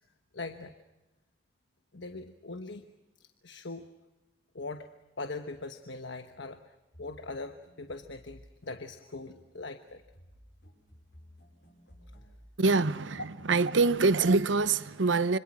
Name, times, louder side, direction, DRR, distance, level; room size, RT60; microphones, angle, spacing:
voice 1, 0.3-0.7 1.9-2.9 3.2-3.9 4.5-4.9 5.2-10.0, left 3 dB, 80° left, 1.2 m, -41 dB
sound 1, 6.9-14.8, equal, 60° left, 5.4 m, -57 dB
voice 2, 12.6-13.2 13.5-15.4, right 3 dB, 90° right, 0.9 m, -24 dB
26.0 x 25.5 x 6.2 m
head